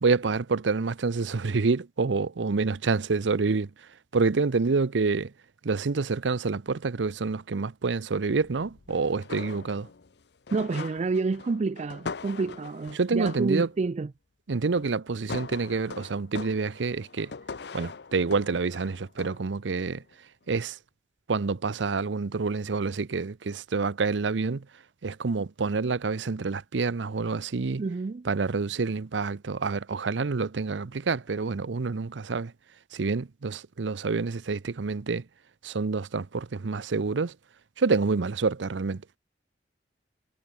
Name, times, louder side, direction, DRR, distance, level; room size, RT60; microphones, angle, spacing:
voice 1, 0.0-3.7 4.1-5.3 5.6-9.9 12.9-13.7 14.5-17.3 17.7-20.0 20.5-20.8 21.3-24.7 25.0-27.8 28.2-32.5 32.9-35.2 35.6-37.3 37.8-39.0, right 4 dB, 85° right, 0.6 m, -27 dB
sound 1, 8.3-10.2 10.5-13.9 14.8-15.0 15.3-19.5 19.9-20.1, left 4 dB, 65° left, 0.7 m, -42 dB
voice 2, 10.5-14.1 27.8-28.3, right 4 dB, 40° right, 0.4 m, -29 dB
head